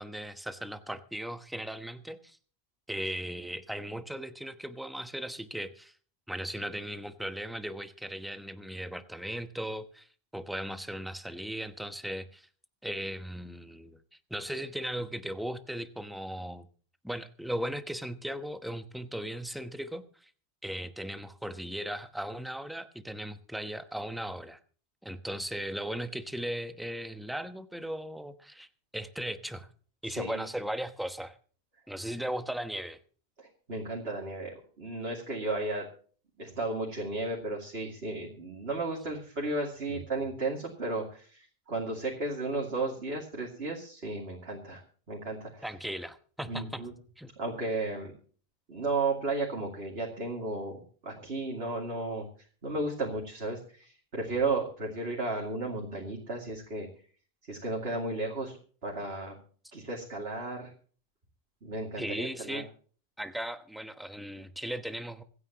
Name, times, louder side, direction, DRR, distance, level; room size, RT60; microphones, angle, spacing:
voice 1, 0.0-2.4 2.9-5.9 6.3-10.1 10.3-12.5 12.8-14.0 14.3-16.7 17.0-20.3 20.6-24.6 25.0-28.7 28.9-29.7 30.0-31.4 31.9-33.0 39.9-40.0 45.6-46.8 47.2-47.3 62.0-62.7 63.2-65.2, right 1 dB, ahead, 8 dB, 0.9 m, -37 dB
voice 2, 30.1-30.4 33.4-35.9 36.4-45.7 46.5-46.9 47.4-48.1 48.7-52.3 52.6-56.9 57.5-58.6 58.8-59.4 59.7-60.7 61.6-62.6, right 2 dB, 70° right, -1 dB, 2.7 m, -34 dB
26.0 x 9.6 x 2.9 m, 0.42 s
omnidirectional pair, 1.1 m